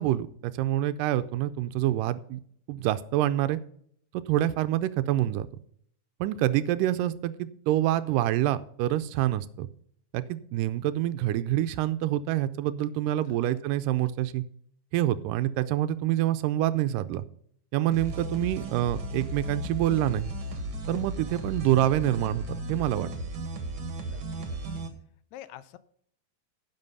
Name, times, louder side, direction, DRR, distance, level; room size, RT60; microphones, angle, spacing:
voice 1, 0.0-2.4 2.7-3.6 4.1-5.5 6.2-9.7 10.1-14.4 14.9-17.2 17.7-20.3 20.9-23.1, right 13 dB, 85° right, 12 dB, 2.2 m, -26 dB
sound 1, 17.9-24.9, right 1 dB, 50° right, 2.0 m, -35 dB
voice 2, 24.0-24.8 25.3-25.8, left 13 dB, 80° left, 15 dB, 1.7 m, -48 dB
10.5 x 7.5 x 5.4 m, 0.63 s
omnidirectional pair, 3.8 m